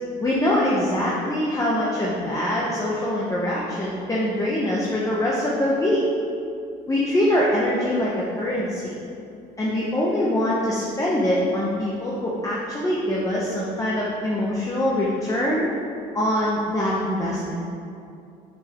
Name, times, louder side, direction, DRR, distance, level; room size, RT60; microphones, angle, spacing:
voice 1, 0.2-6.0 6.9-9.0 9.6-15.7 16.1-17.5, left 1 dB, 20° left, -6 dB, 1.1 m, -23 dB
7.9 x 6.2 x 3.6 m, 2.5 s
cardioid pair, 110°, 17 cm